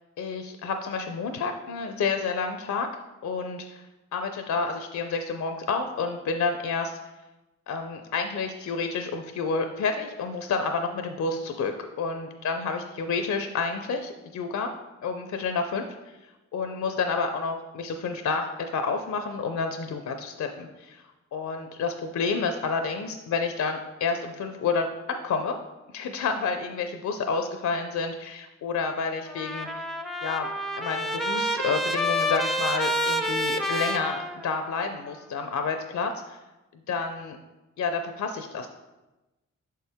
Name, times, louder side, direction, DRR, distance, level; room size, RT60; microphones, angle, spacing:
voice 1, 0.2-2.9 3.2-3.8 4.1-7.0 7.7-14.7 15.0-21.0 21.3-25.6 25.9-29.9 30.2-30.5 30.8-36.4 36.9-37.4 37.8-38.7, left 4 dB, 60° left, 6 dB, 0.5 m, -29 dB
Trumpet, 29.3-34.9, equal, ahead, 0.5 m, -28 dB
6.2 x 4.5 x 3.5 m, 1.1 s
supercardioid pair, 50°, 32 cm